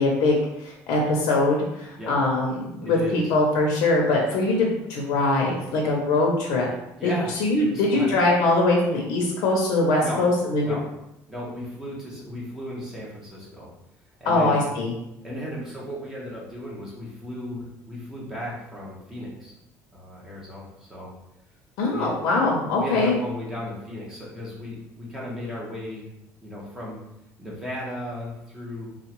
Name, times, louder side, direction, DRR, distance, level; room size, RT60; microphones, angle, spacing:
voice 1, 0.0-6.7 7.0-7.1 7.4-10.8 14.2-14.9 21.8-23.2, left 2 dB, 90° left, -1 dB, 0.7 m, -22 dB
voice 2, 2.8-3.3 7.0-7.3 7.6-8.1 10.0-10.2 10.6-10.8 11.3-13.7 14.2-14.7 15.2-19.5 19.9-21.1 21.9-22.1 22.4-26.1 26.4-27.0 27.4-28.9, left 1 dB, 5° right, -6 dB, 1.2 m, -35 dB
3.6 x 2.4 x 3.0 m, 0.86 s
cardioid pair, 135°, 6 cm